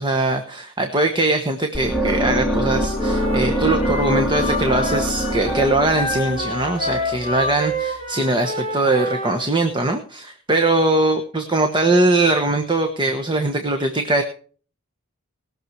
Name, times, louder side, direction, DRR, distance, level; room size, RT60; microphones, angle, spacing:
voice 1, 0.0-14.2, right 2 dB, 20° right, 5 dB, 1.2 m, -21 dB
sound 1, 1.7-7.8, equal, 5° right, 3.4 m, -25 dB
Wind instrument woodwind instrument, 2.6-9.4, left 1 dB, 25° left, 7.6 m, -28 dB
20.5 x 6.8 x 4.7 m, 0.42 s
head